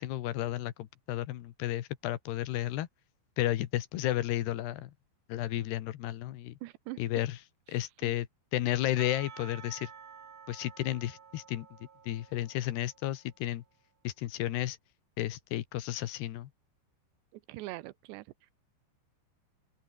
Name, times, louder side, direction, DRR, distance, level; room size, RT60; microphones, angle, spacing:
voice 1, 0.0-2.9 3.4-4.9 5.3-6.5 7.0-7.4 7.7-8.3 8.5-9.9 10.5-11.7 12.0-13.6 14.0-14.8 15.2-16.5, left 14 dB, 70° left, 3.2 m, -32 dB
voice 2, 6.6-7.0 8.0-8.2 17.3-18.5, right 18 dB, 80° right, 2.8 m, -43 dB
Percussion / Church bell, 9.0-13.4, right 7 dB, 45° right, 4.3 m, -51 dB
open air
omnidirectional pair, 5.3 m